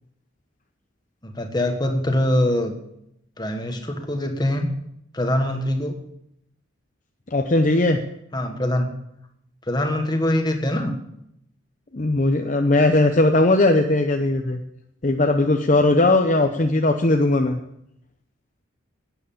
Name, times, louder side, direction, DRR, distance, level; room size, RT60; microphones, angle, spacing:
voice 1, 1.2-2.7 3.4-4.7 5.1-6.0 8.3-8.9 9.7-10.9, left 1 dB, 20° left, 5 dB, 1.4 m, -23 dB
voice 2, 7.3-8.0 11.9-14.6 15.0-17.6, left 2 dB, 35° left, 4 dB, 0.7 m, -18 dB
11.5 x 9.3 x 7.0 m, 0.78 s
head